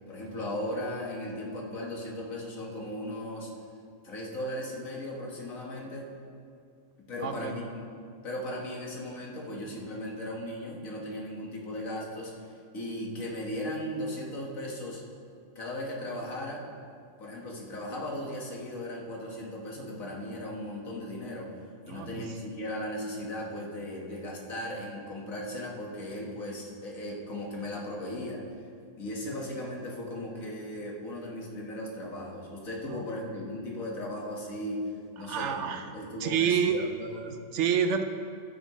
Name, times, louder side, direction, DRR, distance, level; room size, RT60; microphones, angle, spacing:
voice 1, 0.1-3.5 4.0-6.1 7.1-7.8 8.2-15.0 15.6-16.6 17.2-21.6 21.9-28.7 29.0-34.8 35.2-37.2, left 1 dB, 85° left, -2 dB, 2.0 m, -37 dB
voice 2, 7.2-7.6 21.9-22.3 32.9-33.0 35.2-35.9 36.2-38.0, right 7 dB, 65° right, 8 dB, 0.9 m, -29 dB
14.5 x 9.2 x 3.1 m, 2.3 s
omnidirectional pair, 1.4 m